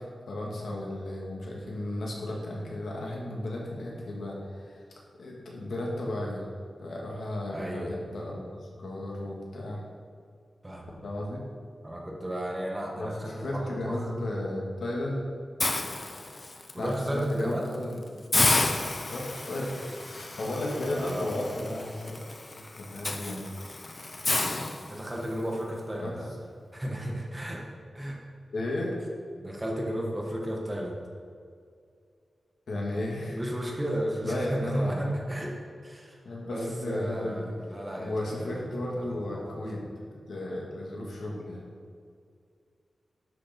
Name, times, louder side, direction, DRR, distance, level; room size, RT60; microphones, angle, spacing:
voice 1, 0.0-4.8 5.2-6.5 6.8-9.8 11.0-11.4 13.0-15.2 16.8-18.0 19.1-19.8 20.4-22.2 22.5-23.4 25.9-26.2 28.5-28.9 32.7-33.4 34.2-35.1 36.2-37.5 38.0-39.8 40.3-41.7, left 1 dB, 80° left, -2 dB, 2.4 m, -34 dB
voice 2, 7.5-8.0 10.6-11.0 11.8-14.1 16.7-17.7 20.9-21.3 23.7-23.8 24.8-26.3 26.7-27.6 27.9-28.2 29.4-31.0 33.3-35.5 35.8-36.2 36.5-38.6 38.9-39.8, equal, 15° right, -1 dB, 1.8 m, -33 dB
Hiss, 15.6-16.7 17.2-17.4 17.7-17.8 18.3-25.4, left 2 dB, 35° left, 0.8 m, -31 dB
12.0 x 7.0 x 5.4 m, 2.2 s
wide cardioid pair, 130°, 0 cm